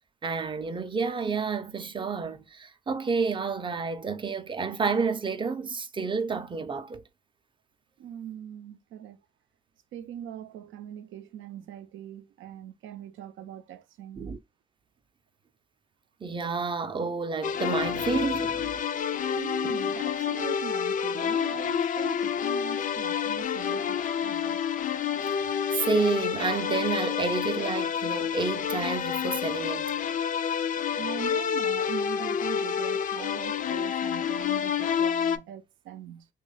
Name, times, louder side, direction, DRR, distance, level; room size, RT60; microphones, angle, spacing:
voice 1, 0.2-7.0 14.2-14.4 16.2-18.8 23.2-23.3 25.7-29.9, right 4 dB, 25° right, 0.5 m, -30 dB
voice 2, 8.0-9.2 9.9-14.3 19.4-24.7 30.9-36.3, right 10 dB, 75° right, 0.5 m, -41 dB
sound 1, 17.4-35.4, left 8 dB, 40° left, 0.4 m, -29 dB
3.0 x 2.3 x 3.9 m
cardioid pair, 90°, 20 cm